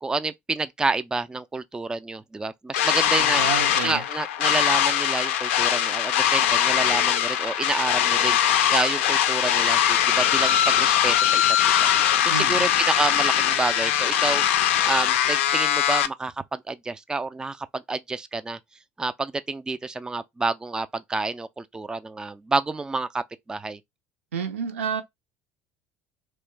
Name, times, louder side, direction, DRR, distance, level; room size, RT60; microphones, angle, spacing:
voice 1, 0.0-3.4 3.8-11.9 12.2-14.4 14.8-18.6 19.0-23.2 23.5-23.8, right 3 dB, 10° right, 0.3 m, -29 dB
sound 1, 2.7-16.1, left 10 dB, 70° left, 0.4 m, -21 dB
voice 2, 3.2-4.0 12.3-12.7 24.3-25.0, right 6 dB, 75° right, 0.5 m, -30 dB
3.0 x 2.2 x 3.2 m
figure-of-eight pair, 60°, 7 cm